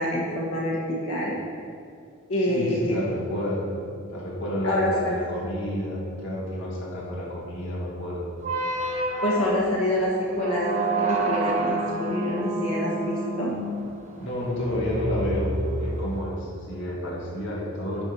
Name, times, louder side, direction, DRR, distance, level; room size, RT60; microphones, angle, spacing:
voice 1, 0.0-1.4 2.3-3.0 4.6-5.3 9.2-13.5, left 1 dB, 90° left, -4 dB, 1.6 m, -26 dB
voice 2, 2.5-3.8 4.1-8.3 14.2-18.0, left 1 dB, 60° left, -4 dB, 1.9 m, -30 dB
sound 1, 8.4-16.2, right 2 dB, 35° right, 1.1 m, -29 dB
11.0 x 4.5 x 5.5 m, 2.3 s
head